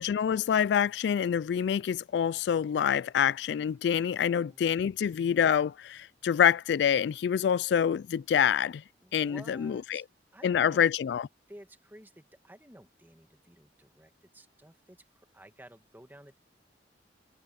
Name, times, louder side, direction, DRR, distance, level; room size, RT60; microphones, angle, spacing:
voice 1, 0.0-8.8 9.1-10.0 10.4-11.3, left 8 dB, 70° left, 0.3 m, -26 dB
voice 2, 4.2-4.9 9.0-10.1 10.3-10.8 11.5-15.1 15.3-16.4, right 1 dB, 10° right, 2.2 m, -53 dB
head